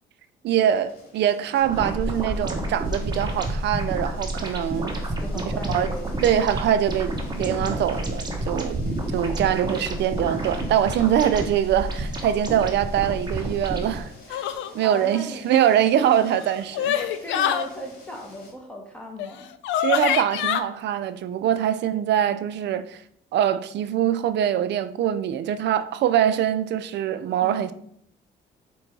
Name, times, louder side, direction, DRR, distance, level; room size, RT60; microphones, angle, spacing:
voice 1, 0.4-5.0 5.3-5.4 5.7-5.9 6.2-14.4 14.7-17.0 19.8-23.0 23.3-27.7, right 10 dB, 65° right, 0.4 m, -23 dB
sound 1, 0.6-18.5, left 2 dB, 50° left, 1.9 m, -49 dB
sound 2, 1.6-14.0, right 1 dB, 20° right, 1.0 m, -29 dB
voice 2, 5.2-6.2 14.8-15.5 17.1-19.5 27.4-27.7, right 1 dB, 5° left, 1.3 m, -37 dB
sound 3, 14.3-14.7 16.1-17.7 19.2-19.3 19.6-20.6, left 10 dB, 80° left, 0.4 m, -25 dB
4.5 x 2.6 x 4.5 m
supercardioid pair, 70°, 19 cm